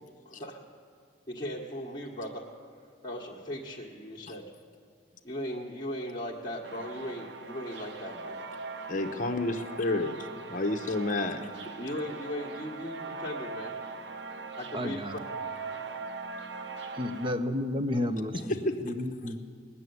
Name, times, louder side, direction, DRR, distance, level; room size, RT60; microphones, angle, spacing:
voice 1, 0.2-0.6 1.3-2.4 3.0-4.4 5.2-8.5 11.8-13.8 14.6-15.0, equal, 20° left, -4 dB, 1.4 m, -38 dB
sound 1, 6.6-17.3, right 4 dB, 60° right, 0.8 m, -41 dB
voice 2, 8.9-10.2 10.5-11.4 18.6-18.7, left 2 dB, 40° left, 6 dB, 0.9 m, -29 dB
voice 3, 14.7-15.3 16.9-19.4, left 1 dB, 25° right, 9 dB, 0.7 m, -32 dB
20.0 x 7.0 x 9.4 m, 2.1 s
head